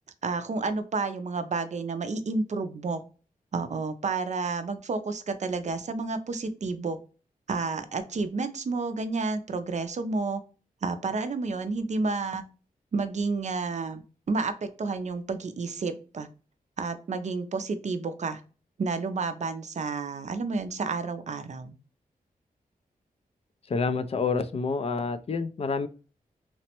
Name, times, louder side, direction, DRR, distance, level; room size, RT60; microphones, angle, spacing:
voice 1, 0.2-3.0 3.5-7.0 7.5-10.4 10.8-12.4 12.9-16.3 16.8-18.4 18.8-21.8, right 4 dB, 50° right, 0.4 m, -30 dB
voice 2, 23.7-25.9, left 4 dB, 40° left, 0.4 m, -28 dB
3.2 x 2.1 x 2.8 m
wide cardioid pair, 75°, 15 cm